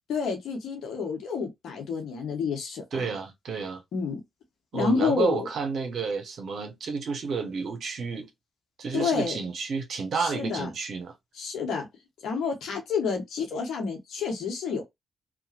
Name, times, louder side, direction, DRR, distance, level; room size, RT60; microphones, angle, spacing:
voice 1, 0.1-3.1 3.9-4.2 4.7-5.5 8.9-9.4 10.1-10.7 11.3-11.9 12.2-14.8, left 5 dB, 75° left, 0.9 m, -29 dB
voice 2, 2.9-3.8 4.7-8.3 8.8-11.1, right 5 dB, 65° right, 0.7 m, -31 dB
2.9 x 2.1 x 2.7 m
supercardioid pair, 45°, 0 cm